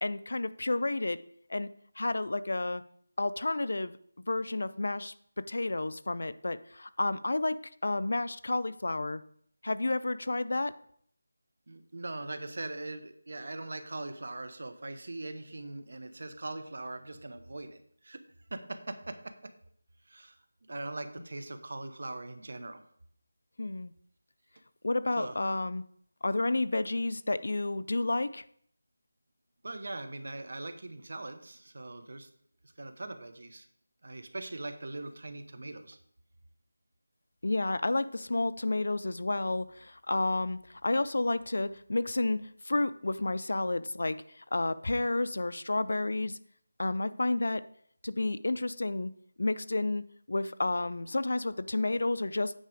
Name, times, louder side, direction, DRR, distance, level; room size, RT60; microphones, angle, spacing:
voice 1, 0.0-1.2 1.5-1.7 2.0-2.8 3.2-4.0 4.3-9.2 9.6-10.8 23.6-23.9 24.8-25.8 26.2-28.4 37.4-46.4 46.8-47.7 48.0-49.1 49.4-52.5, left 2 dB, 65° left, 15 dB, 0.4 m, -31 dB
voice 2, 11.7-17.8 18.0-18.2 18.5-19.2 20.1-20.4 20.7-22.8 25.2-25.4 29.6-32.3 32.6-33.7 34.0-36.0, right 2 dB, 55° right, 9 dB, 0.9 m, -41 dB
8.9 x 4.8 x 4.9 m, 0.65 s
figure-of-eight pair, 175°, 0 cm